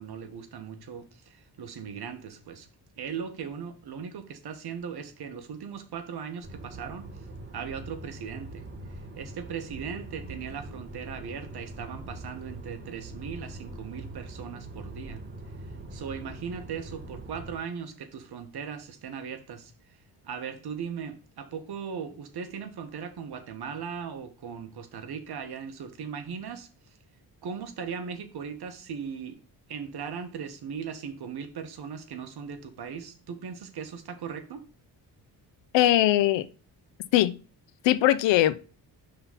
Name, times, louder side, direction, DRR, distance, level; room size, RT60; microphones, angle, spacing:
voice 1, 0.0-2.7 3.0-7.1 7.5-15.2 15.9-19.7 20.2-26.7 27.4-29.4 29.7-34.7, right 6 dB, 60° right, 1.3 m, -38 dB
sound 1, 6.4-17.6, right 2 dB, 25° right, 1.6 m, -42 dB
voice 2, 35.7-36.5 37.1-37.3 37.8-38.5, left 14 dB, 80° left, 0.7 m, -20 dB
5.6 x 3.8 x 5.6 m
cardioid pair, 75°, 44 cm